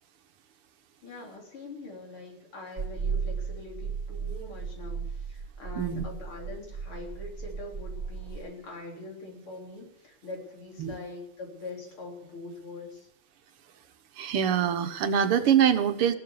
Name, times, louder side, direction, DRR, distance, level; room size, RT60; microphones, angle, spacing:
voice 1, 1.0-13.1, left 2 dB, 75° left, 0 dB, 4.6 m, -43 dB
sound 1, 2.8-8.4, right 5 dB, 35° right, 3.3 m, -35 dB
voice 2, 14.2-16.1, right 8 dB, 85° right, 8 dB, 2.1 m, -24 dB
16.0 x 12.0 x 7.1 m, 0.79 s
omnidirectional pair, 2.4 m